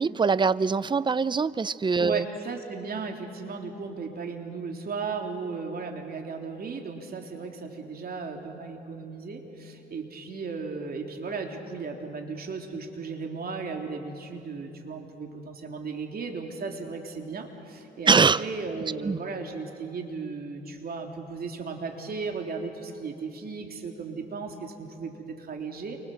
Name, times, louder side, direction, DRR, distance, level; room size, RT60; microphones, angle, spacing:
voice 1, 0.0-2.3 18.1-18.4 19.0-19.2, right 5 dB, 25° right, 17 dB, 0.6 m, -23 dB
voice 2, 2.0-26.0, right 4 dB, 50° right, 3 dB, 3.5 m, -36 dB
29.0 x 25.0 x 7.9 m, 2.8 s
cardioid pair, 90°, 20 cm